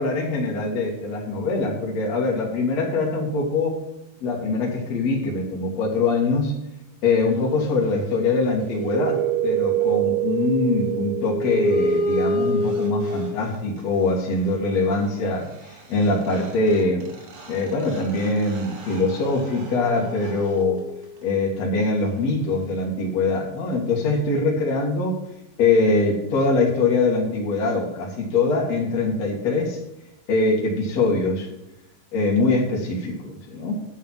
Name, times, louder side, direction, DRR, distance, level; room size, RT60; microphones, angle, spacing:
voice 1, 0.0-3.8 4.2-6.5 7.0-9.2 9.4-15.5 15.9-17.0 17.5-20.8 21.2-25.2 25.6-29.8 30.3-31.5 32.1-33.7, left 3 dB, 55° left, -3 dB, 2.0 m, -23 dB
sound 1, 8.4-13.8 15.7-15.8 16.0-21.5, right 4 dB, 85° right, 5.7 m, -27 dB
10.5 x 7.3 x 5.6 m, 0.87 s
omnidirectional pair, 5.8 m